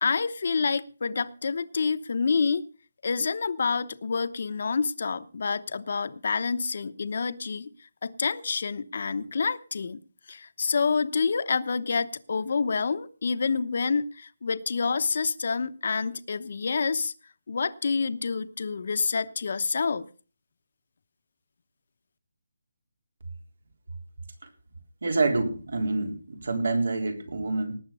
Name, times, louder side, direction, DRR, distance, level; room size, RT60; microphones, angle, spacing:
voice 1, 0.0-2.6 3.0-7.7 8.0-10.0 10.3-17.1 17.5-20.0, left 5 dB, 50° left, 12 dB, 0.9 m, -28 dB
voice 2, 25.0-27.7, right 3 dB, 70° right, 5 dB, 3.8 m, -27 dB
19.0 x 8.0 x 5.5 m, 0.38 s
hypercardioid pair, 175°, 0 cm